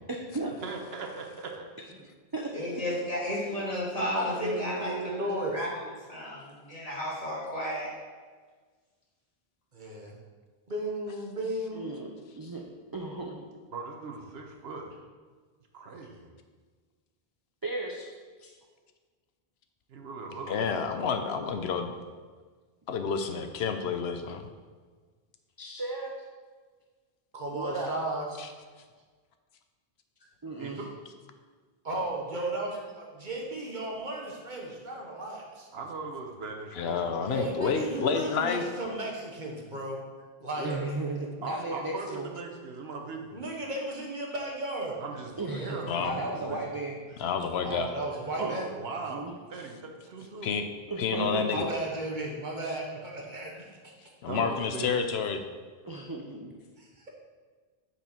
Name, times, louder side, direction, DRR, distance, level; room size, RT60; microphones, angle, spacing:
voice 1, 0.6-1.7 13.7-14.9 15.7-16.3 19.9-20.9 30.6-30.9 35.7-37.1 40.6-40.9 41.4-43.4 45.0-46.9 48.4-50.6 51.3-51.4 54.3-55.0, right 4 dB, 80° right, 2 dB, 1.1 m, -39 dB
voice 2, 2.5-5.7 6.1-7.9 51.1-51.3, left 1 dB, 35° left, -8 dB, 2.6 m, -33 dB
voice 3, 4.1-5.6 9.7-10.2 10.7-11.9 27.3-28.4 31.8-35.7 37.2-40.0 40.4-40.7 43.3-45.0 47.6-48.7 51.5-53.9 56.8-57.1, right 1 dB, 50° right, -1 dB, 1.2 m, -35 dB
voice 4, 11.7-12.6 12.9-13.4 17.6-18.1 25.6-26.1 27.5-27.9 30.4-30.8 40.6-42.3 45.4-47.0 48.4-48.5 49.1-49.3 50.9-51.7 55.8-56.5, right 2 dB, 25° right, 0 dB, 0.5 m, -35 dB
voice 5, 20.5-21.9 22.9-24.4 28.4-28.5 36.8-38.7 45.9-46.1 47.2-47.9 50.4-50.7 51.0-51.7 54.2-55.4, left 6 dB, 80° left, 7 dB, 0.9 m, -29 dB
8.4 x 4.6 x 4.4 m, 1.5 s
omnidirectional pair, 1.0 m